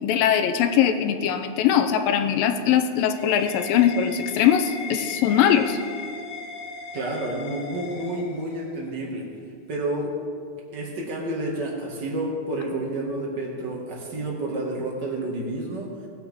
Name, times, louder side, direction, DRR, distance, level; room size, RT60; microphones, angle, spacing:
voice 1, 0.0-5.8, left 9 dB, 80° left, 7 dB, 2.4 m, -21 dB
sound 1, 2.4-8.9, left 4 dB, 65° left, 1.7 m, -38 dB
voice 2, 6.9-9.3 9.7-10.1 10.7-15.9, right 1 dB, 35° right, -2 dB, 2.0 m, -30 dB
19.0 x 9.1 x 3.6 m, 2.3 s
omnidirectional pair, 4.0 m